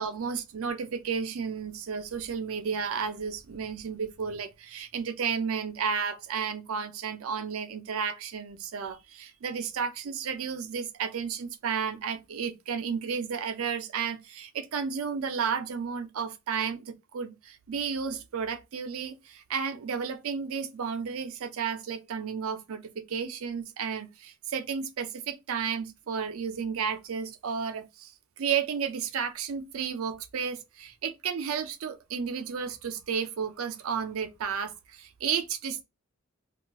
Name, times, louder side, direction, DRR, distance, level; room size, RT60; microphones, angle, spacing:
voice 1, 0.0-35.8, right 6 dB, 75° right, 0.4 m, -32 dB
2.3 x 2.3 x 3.4 m
head